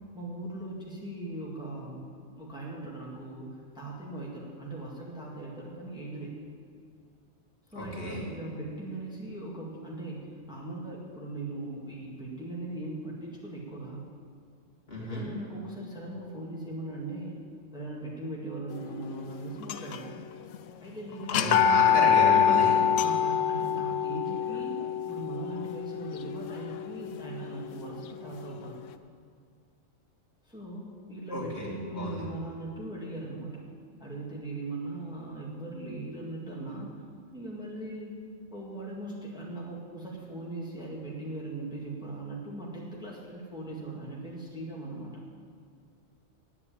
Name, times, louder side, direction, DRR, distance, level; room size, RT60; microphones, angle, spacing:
voice 1, 0.1-2.1 2.4-6.3 7.7-14.0 15.0-17.4 17.7-20.1 20.8-21.8 23.0-28.8 30.4-33.6 34.0-37.0 37.3-38.2 38.5-45.1, right 2 dB, 5° right, -4 dB, 1.9 m, -39 dB
voice 2, 7.7-8.2 14.9-15.3 21.3-22.8 31.3-31.7 31.9-32.2, left 1 dB, 50° left, -3 dB, 2.9 m, -32 dB
sound 1, 19.6-20.2 20.5-20.6 21.2-27.1, left 8 dB, 80° left, 1.0 m, -25 dB
9.6 x 8.5 x 8.8 m, 2.2 s
omnidirectional pair, 1.3 m